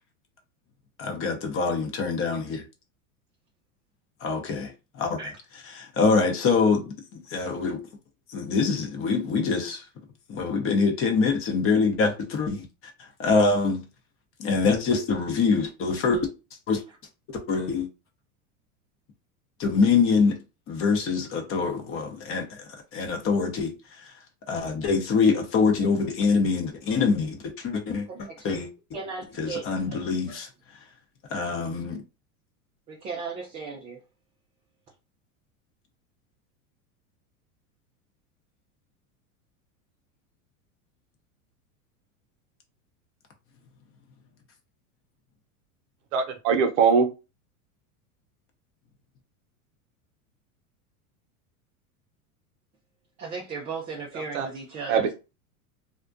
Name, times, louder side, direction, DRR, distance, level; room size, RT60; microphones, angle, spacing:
voice 1, 1.0-2.6 4.2-4.7 5.0-5.2 5.8-6.8 7.1-7.8 8.3-9.8 10.3-12.6 13.2-13.8 14.4-16.3 16.7-16.8 17.3-17.9 19.6-20.4 20.7-22.5 22.9-23.7 24.5-28.1 28.4-28.7 29.4-30.5 31.3-32.0, left 4 dB, 30° left, 0.6 m, -24 dB
voice 2, 28.1-28.5 28.9-30.0 32.9-34.0 53.2-55.1, right 4 dB, 20° right, 0.3 m, -36 dB
voice 3, 46.1-47.1 54.3-54.5 54.9-55.1, right 6 dB, 60° right, 0.7 m, -21 dB
2.4 x 2.1 x 2.4 m
hypercardioid pair, 100°, 43 cm